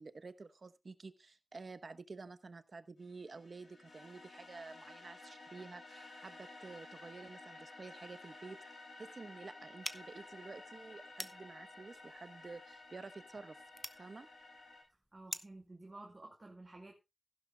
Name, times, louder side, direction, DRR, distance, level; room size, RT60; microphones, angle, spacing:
voice 1, 0.0-13.6 14.0-14.3, right 4 dB, 55° right, 12 dB, 0.9 m, -51 dB
sound 1, 3.0-14.8, left 2 dB, 85° left, 5.4 m, -54 dB
sound 2, 9.8-15.7, equal, 5° left, 0.7 m, -49 dB
voice 2, 15.1-16.9, right 2 dB, 30° right, 0 dB, 2.2 m, -52 dB
15.5 x 11.5 x 2.3 m, 0.22 s
wide cardioid pair, 85°, 0 cm